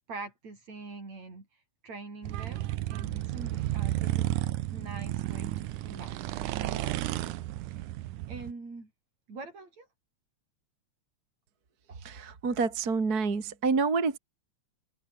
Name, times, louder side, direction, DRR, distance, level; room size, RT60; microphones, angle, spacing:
voice 1, 0.1-1.5 1.8-4.4 4.7-7.3 7.7-7.9 8.3-8.9 9.3-9.9, right 3 dB, 65° right, 8.1 m, -44 dB
sound 1, 2.2-8.5, right 15 dB, 90° right, 2.4 m, -32 dB
voice 2, 12.0-14.2, right 4 dB, 30° right, 3.0 m, -28 dB
omnidirectional pair, 3.4 m